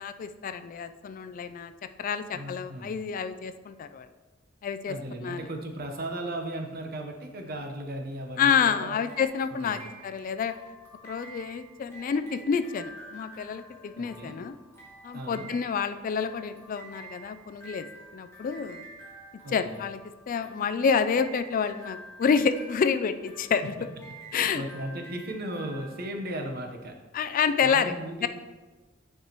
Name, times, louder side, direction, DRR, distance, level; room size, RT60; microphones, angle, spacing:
voice 1, 0.0-1.7 2.0-4.1 4.6-4.9 5.2-5.5 8.4-10.5 11.0-14.5 15.0-17.9 18.1-18.9 19.5-20.0 20.3-23.7 24.3-24.6 27.1-27.9 28.2-28.3, left 6 dB, 45° left, 11 dB, 0.3 m, -28 dB
voice 2, 2.3-3.0 4.9-9.0 9.5-9.8 14.0-14.4 15.1-15.5 19.4-19.8 24.3-26.9 27.6-28.3, right 1 dB, 55° right, 3 dB, 0.9 m, -36 dB
sound 1, 9.0-26.7, right 2 dB, 15° left, 2.0 m, -49 dB
9.3 x 4.7 x 2.9 m, 1.2 s
head